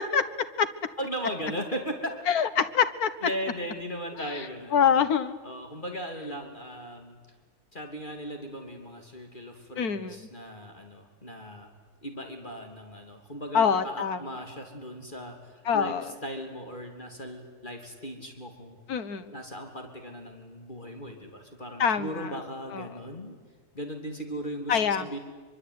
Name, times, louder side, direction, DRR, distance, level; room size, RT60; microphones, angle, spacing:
voice 1, 1.0-2.1 3.2-4.9 5.4-7.2 7.7-11.7 12.0-18.8 19.3-23.4 23.7-25.2, equal, 30° left, 3 dB, 3.1 m, -37 dB
voice 2, 2.3-3.1 4.4-4.5 4.7-5.4 9.8-10.2 13.5-14.2 15.7-16.1 18.9-19.3 21.8-22.3 22.7-22.9 24.7-25.1, left 7 dB, 75° left, 12 dB, 1.9 m, -24 dB
24.5 x 24.5 x 9.6 m, 1.4 s
omnidirectional pair, 1.6 m